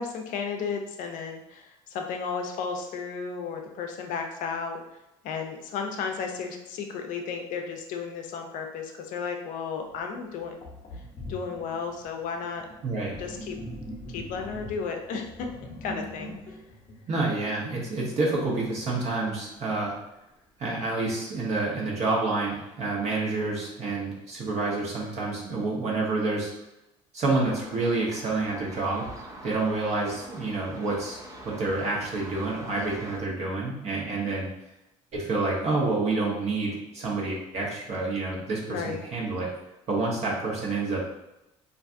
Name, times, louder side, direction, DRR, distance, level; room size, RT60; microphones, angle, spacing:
voice 1, 0.0-4.8 5.2-10.6 11.3-12.6 13.2-13.5 14.1-15.3 15.8-16.3 38.7-39.0, left 5 dB, 65° left, 3 dB, 0.5 m, -33 dB
Sink (filling or washing), 9.9-10.0 10.6-17.9, left 1 dB, 35° left, 0.8 m, -42 dB
voice 2, 12.8-13.1 17.1-19.9 20.6-26.5 27.1-29.1 29.4-31.2 31.4-34.5 35.1-39.5 39.9-41.0, right 3 dB, 50° right, -3 dB, 0.9 m, -28 dB
sound 1, 27.5-33.2, right 1 dB, 20° right, 0.6 m, -44 dB
2.5 x 2.3 x 2.5 m, 0.93 s
supercardioid pair, 85°, 15 cm